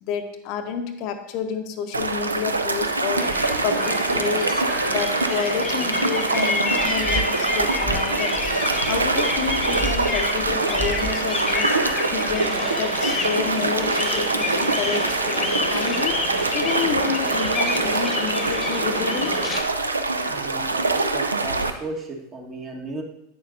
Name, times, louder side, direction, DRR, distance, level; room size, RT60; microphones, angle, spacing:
voice 1, 0.0-3.3 3.6-4.6 4.9-8.4 8.9-11.7 12.1-19.3, left 7 dB, 50° left, 7 dB, 0.6 m, -29 dB
sound 1, 1.9-21.7, right 3 dB, 90° right, 0.4 m, -24 dB
sound 2, 3.2-19.6, left 2 dB, 20° left, 0.9 m, -29 dB
voice 2, 20.3-20.9 21.1-23.0, right 2 dB, 30° right, 1 dB, 1.3 m, -34 dB
8.6 x 6.5 x 2.6 m, 0.81 s
figure-of-eight pair, 85°, 0 cm